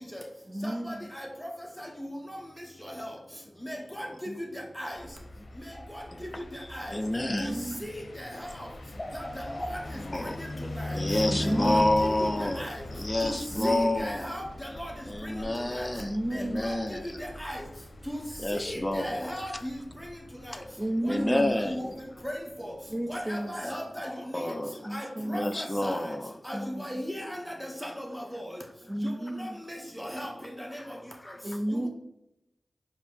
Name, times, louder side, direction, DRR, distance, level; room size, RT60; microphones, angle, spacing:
voice 1, 0.5-1.1 4.2-4.4 7.3-7.9 11.3-11.9 13.6-14.0 16.0-16.7 20.8-21.5 22.9-23.6 24.8-25.5 26.5-27.0 28.9-29.6 31.4-31.9, right 1 dB, 25° right, 0.5 m, -32 dB
voice 2, 3.7-4.1 4.8-4.9 6.7-6.9 7.4-7.5 7.8-7.9 11.4-11.5 12.6-12.7 13.2-13.4 13.6-13.7 14.0-14.9 15.8-15.9 16.3-16.7 17.4-17.6 18.1-18.2 18.7-19.5 21.7-21.9 22.2-22.3 23.1-24.1 24.9-25.0 25.3-26.0 26.5-26.6 26.8-27.2 28.0-28.1 29.4-30.3, equal, 5° left, 0.9 m, -36 dB
sound 1, 4.9-22.9, left 1 dB, 75° left, 0.6 m, -41 dB
voice 3, 5.7-7.7 8.9-10.4 10.9-12.6 12.9-14.4 15.1-17.2 18.4-19.6 21.1-22.0 23.5-23.6 23.9-26.3 30.8-31.4, left 1 dB, 25° left, 0.4 m, -30 dB
4.8 x 2.7 x 3.4 m
cardioid pair, 45°, 0 cm